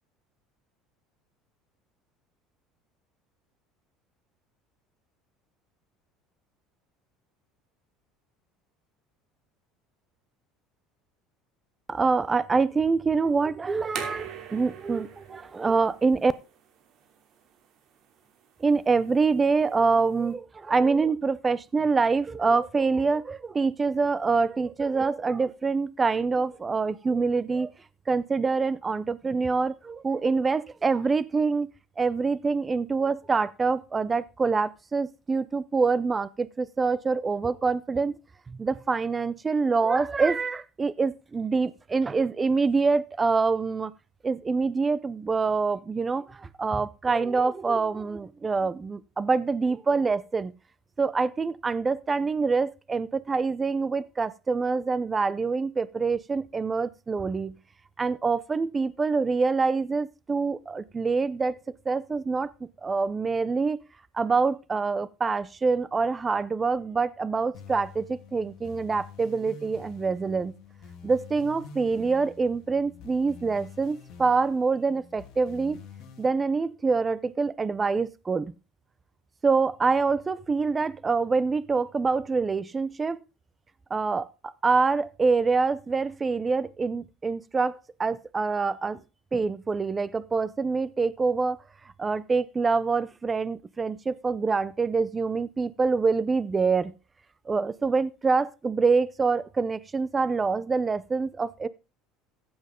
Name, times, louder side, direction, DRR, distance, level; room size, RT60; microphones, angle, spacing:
voice 1, 11.9-16.3 18.6-27.7 28.1-31.7 32.0-38.1 38.5-43.9 44.2-50.5 51.0-57.6 58.0-61.6 61.9-62.5 62.8-63.8 64.1-70.5 71.0-75.8 76.2-78.5 79.4-83.2 83.9-89.0 89.3-91.6 92.0-96.9 97.5-101.7, right 4 dB, 20° right, 0.6 m, -25 dB
sound 1, 13.7-20.3, right 8 dB, 50° right, 2.8 m, -44 dB
sound 2, 67.5-76.3, left 6 dB, 55° left, 3.1 m, -47 dB
14.5 x 7.9 x 3.7 m
cardioid pair, 130°, 0 cm